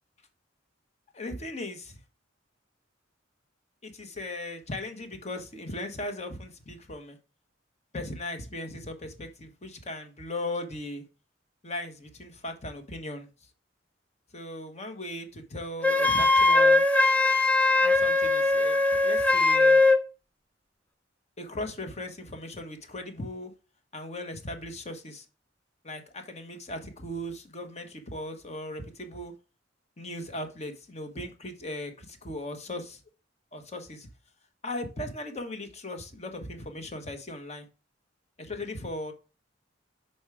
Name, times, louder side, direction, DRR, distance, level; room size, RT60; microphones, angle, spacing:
voice 1, 1.1-2.0 3.8-7.2 7.9-11.0 11.6-13.3 14.3-16.8 17.9-19.8 21.4-23.5 23.9-25.2 25.8-29.3 30.0-33.0 33.5-34.1 34.6-37.7 38.4-39.1, left 1 dB, 35° left, 1.1 m, -38 dB
Wind instrument woodwind instrument, 15.8-20.0, left 2 dB, 5° left, 0.4 m, -21 dB
6.3 x 4.3 x 4.7 m
head